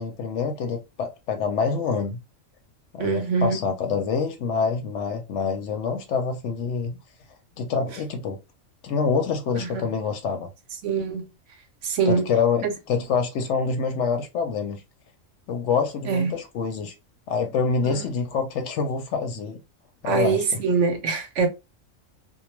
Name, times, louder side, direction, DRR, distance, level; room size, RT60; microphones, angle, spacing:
voice 1, 0.0-2.2 2.9-7.0 7.6-8.4 8.8-10.5 12.1-14.8 15.5-16.9 17.3-19.6 20.0-20.6, left 5 dB, 70° left, 0.8 m, -26 dB
voice 2, 3.0-3.6 9.6-9.9 10.8-11.2 11.8-12.2 12.6-12.7 16.1-16.4 17.8-18.1 20.0-21.5, right 5 dB, 70° right, 0.9 m, -24 dB
2.3 x 2.1 x 3.0 m
omnidirectional pair, 1.4 m